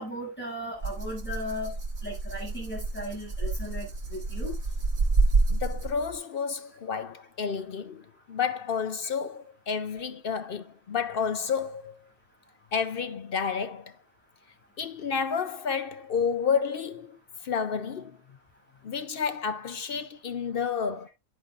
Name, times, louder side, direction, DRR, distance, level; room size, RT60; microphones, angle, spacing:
voice 1, 0.0-1.7 2.0-4.5, equal, 5° left, 6.7 m, -36 dB
Rattle (instrument), 0.8-6.1, right 3 dB, 55° right, 2.0 m, -28 dB
voice 2, 5.5-12.0 12.7-14.0 14.8-18.2 18.8-21.1, left 6 dB, 55° left, 0.6 m, -30 dB
9.9 x 9.3 x 2.4 m
omnidirectional pair, 1.4 m